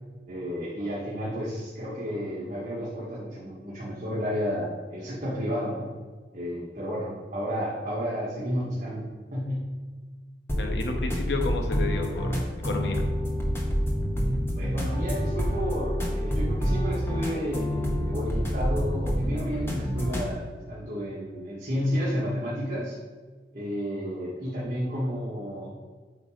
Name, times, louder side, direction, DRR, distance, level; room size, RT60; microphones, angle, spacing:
voice 1, 0.3-5.9 6.3-9.0 9.3-9.7 14.5-23.0 23.5-25.7, equal, 45° right, -8 dB, 1.5 m, -31 dB
sound 1, 10.5-20.3, equal, 15° left, 1.0 m, -27 dB
voice 2, 10.6-12.4 12.6-13.0, left 3 dB, 75° left, 4 dB, 0.7 m, -31 dB
7.9 x 2.9 x 5.0 m, 1.4 s
head